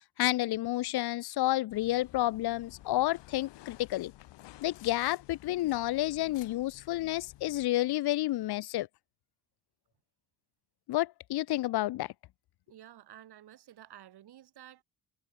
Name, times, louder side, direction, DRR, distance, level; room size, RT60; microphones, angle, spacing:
voice 1, 0.2-4.1 4.6-8.9 10.9-12.1, left 16 dB, 65° left, 0.7 m, -30 dB
sound 1, 1.7-7.7, left 16 dB, 85° left, 1.5 m, -53 dB
voice 2, 12.7-14.8, right 12 dB, 65° right, 2.9 m, -52 dB
cardioid pair, 110°, 41 cm